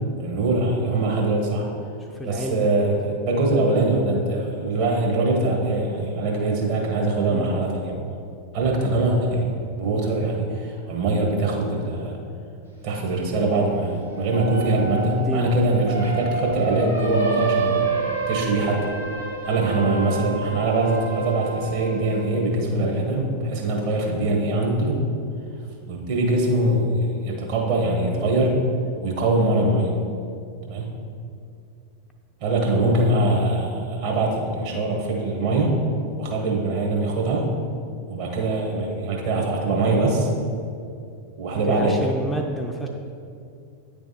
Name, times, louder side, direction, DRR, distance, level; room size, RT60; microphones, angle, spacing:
voice 1, 0.1-1.7 2.2-7.9 8.5-9.5 9.8-12.2 12.8-18.0 18.3-18.9 19.4-25.0 25.9-28.5 29.0-29.9 30.6-30.9 32.4-35.8 36.2-37.5 38.1-40.3 41.4-41.9, right 2 dB, 45° right, -1 dB, 1.4 m, -23 dB
voice 2, 2.1-2.7 7.3-7.5 14.9-15.5 41.7-42.9, equal, 10° left, 2 dB, 0.5 m, -30 dB
sound 1, 14.0-22.3, right 4 dB, 90° right, 1.6 m, -28 dB
9.2 x 3.4 x 4.2 m, 2.5 s
figure-of-eight pair, 90°, 0 cm